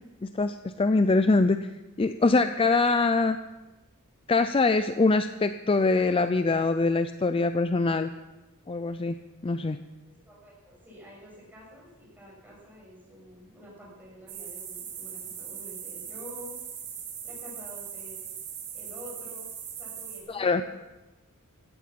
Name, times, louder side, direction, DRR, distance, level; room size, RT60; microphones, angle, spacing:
voice 1, 0.2-1.7 2.0-3.4 4.3-8.1 8.7-9.2 9.4-9.8 20.3-20.6, left 3 dB, 25° left, 10 dB, 0.4 m, -23 dB
voice 2, 10.1-16.5 17.2-18.2 18.7-19.5 19.7-20.8, equal, 10° right, -5 dB, 7.3 m, -48 dB
sound 1, 14.3-20.2, right 8 dB, 70° right, 3.9 m, -40 dB
17.0 x 12.5 x 5.9 m, 1.1 s
head